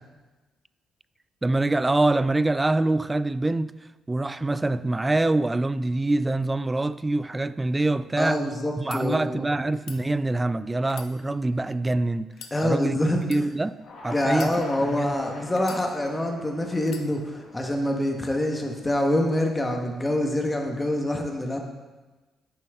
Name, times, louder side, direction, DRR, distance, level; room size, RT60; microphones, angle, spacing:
voice 1, 1.4-3.7 4.1-8.4 8.8-12.3 12.6-13.7 14.0-14.5 14.8-15.2, right 2 dB, 15° right, 0.3 m, -25 dB
voice 2, 8.2-9.4 12.5-13.2 14.1-21.6, left 1 dB, 15° left, 1.3 m, -26 dB
sound 1, 8.9-9.0 9.7-10.0 10.8-11.7 12.3-12.6 13.2-13.4 14.3-15.0 15.6-16.2 16.8-17.1, left 8 dB, 85° left, 0.9 m, -43 dB
sound 2, 13.8-20.0, left 3 dB, 65° left, 2.0 m, -46 dB
10.5 x 9.0 x 3.6 m
cardioid pair, 90°, 0 cm